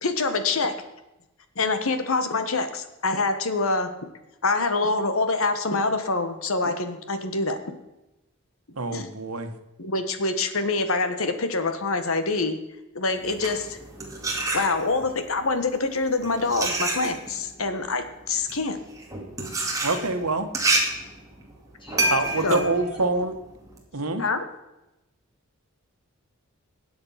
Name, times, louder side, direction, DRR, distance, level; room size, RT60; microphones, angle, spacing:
voice 1, 0.0-0.7 1.5-3.9 4.4-7.6 8.9-9.1 9.8-12.6 12.9-13.8 14.5-18.8 22.4-22.6 24.2-24.4, left 3 dB, 70° left, 9 dB, 1.5 m, -25 dB
voice 2, 8.7-9.5 19.8-20.5 22.1-23.4 23.9-24.2, right 3 dB, 85° right, 7 dB, 1.5 m, -25 dB
sound 1, 13.2-15.1 15.9-23.8, right 2 dB, 15° right, 2.3 m, -28 dB
voice 3, 21.8-23.1, equal, 25° left, 1 dB, 2.2 m, -42 dB
20.5 x 7.9 x 5.9 m, 0.96 s
head